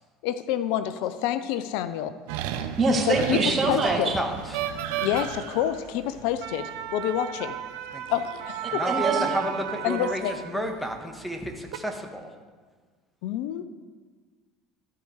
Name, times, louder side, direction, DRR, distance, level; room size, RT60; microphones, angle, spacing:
voice 1, 0.2-2.1 3.1-3.4 3.7-4.1 5.0-7.5 8.1-8.9 9.8-10.7 13.2-13.6, left 11 dB, 65° left, 12 dB, 0.4 m, -28 dB
sound 1, 2.3-10.7 11.5-11.8, right 10 dB, 70° right, 0.6 m, -33 dB
voice 2, 2.8-4.2 8.8-9.4, right 3 dB, 35° right, 1 dB, 1.9 m, -24 dB
voice 3, 3.8-4.7 7.9-8.0 8.7-12.3, equal, ahead, 4 dB, 1.4 m, -31 dB
13.5 x 4.8 x 4.8 m, 1.5 s
hypercardioid pair, 70°, 0 cm